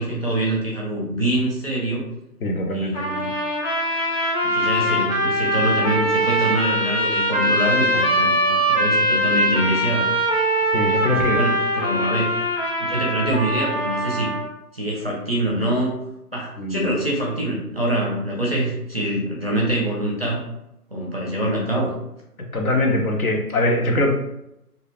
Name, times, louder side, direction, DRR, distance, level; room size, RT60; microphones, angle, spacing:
voice 1, 0.0-2.1 2.7-3.4 4.4-10.1 11.0-12.3 12.8-14.3 14.7-16.0 16.3-20.4 20.9-22.0, right 1 dB, 40° right, -3 dB, 0.5 m, -25 dB
voice 2, 2.4-3.0 10.7-11.4 11.9-12.1 16.6-16.9 22.5-24.1, left 1 dB, 65° left, 1 dB, 0.6 m, -22 dB
sound 1, 2.9-14.5, equal, 85° left, 1.2 m, -22 dB
2.3 x 2.1 x 3.2 m, 0.84 s
hypercardioid pair, 180°, 47 cm